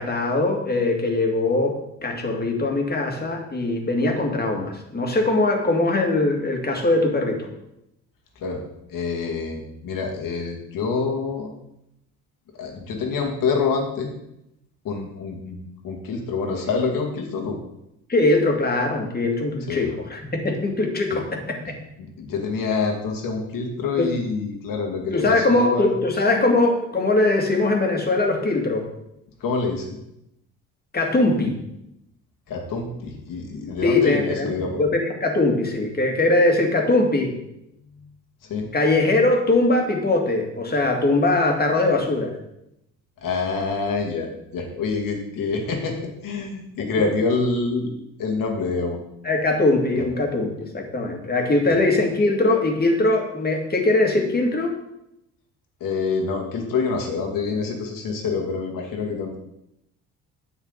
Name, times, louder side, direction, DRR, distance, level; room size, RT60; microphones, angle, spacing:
voice 1, 0.0-1.8 2.0-7.5 18.1-21.7 24.0-24.1 25.1-28.9 30.9-31.6 33.8-37.3 38.7-42.3 49.2-54.7, left 2 dB, 25° left, 2 dB, 2.4 m, -21 dB
voice 2, 8.9-11.5 12.6-14.1 14.8-17.6 19.7-19.9 21.1-21.2 22.0-25.9 29.4-29.9 32.5-34.8 38.5-38.7 43.2-44.3 44.5-47.9 48.2-49.0 51.7-51.8 55.8-59.4, left 4 dB, 65° left, 2 dB, 2.4 m, -26 dB
10.0 x 7.2 x 4.1 m, 0.82 s
supercardioid pair, 75°, 35 cm